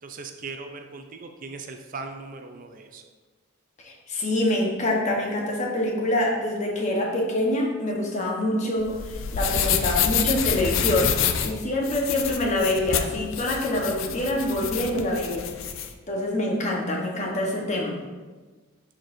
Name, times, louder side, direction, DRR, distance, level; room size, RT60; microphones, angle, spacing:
voice 1, 0.0-3.0, right 4 dB, 40° right, 5 dB, 0.4 m, -39 dB
voice 2, 3.8-15.5 16.1-18.0, left 1 dB, 35° left, -1 dB, 1.0 m, -25 dB
sound 1, 8.8-15.9, left 8 dB, 65° left, 0.5 m, -27 dB
11.0 x 4.4 x 2.6 m, 1.3 s
head